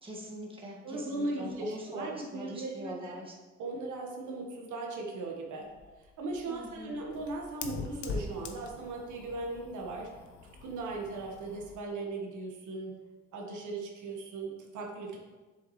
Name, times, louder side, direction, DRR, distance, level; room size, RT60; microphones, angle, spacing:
voice 1, 0.0-3.3 6.5-7.0, equal, 20° right, -3 dB, 1.8 m, -43 dB
voice 2, 0.8-3.2 3.6-5.7 6.0-10.1 10.6-13.0 13.3-15.2, right 2 dB, 80° right, 0 dB, 1.5 m, -38 dB
Fire, 5.6-11.8, left 4 dB, 75° left, 0.9 m, -43 dB
7.3 x 7.1 x 3.2 m, 1.2 s
cardioid pair, 90°, 30 cm